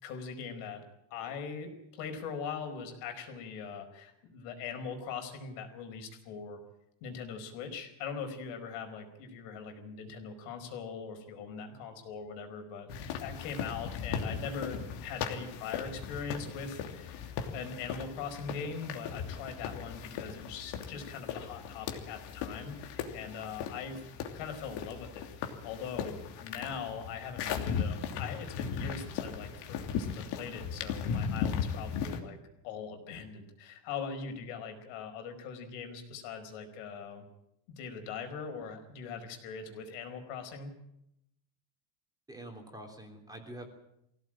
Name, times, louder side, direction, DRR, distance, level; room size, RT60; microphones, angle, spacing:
voice 1, 0.0-0.8 1.1-6.6 7.0-24.0 24.3-32.4 32.6-37.3 37.7-40.7, left 6 dB, 75° left, 5 dB, 4.9 m, -41 dB
sound 1, 12.9-32.2, left 7 dB, 55° left, 3.0 m, -37 dB
voice 2, 42.3-43.7, right 1 dB, 10° right, 2 dB, 3.2 m, -46 dB
21.0 x 17.0 x 8.9 m, 0.81 s
cardioid pair, 150°, 47 cm